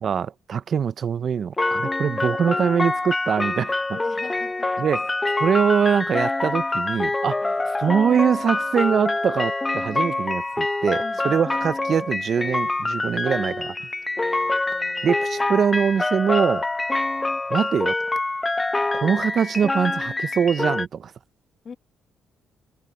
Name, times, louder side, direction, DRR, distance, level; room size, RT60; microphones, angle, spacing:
voice 1, 0.0-3.8 4.8-5.1 5.4-13.9 15.0-16.7 17.5-18.0 18.9-21.1, right 7 dB, 55° right, 0.7 m, -23 dB
sound 1, 1.6-20.9, left 2 dB, 20° left, 0.9 m, -25 dB
voice 2, 3.9-5.0 7.4-7.7 11.0-11.4 14.7-15.7 21.6-21.7, left 6 dB, 45° left, 2.5 m, -42 dB
cardioid pair, 90°, 0 cm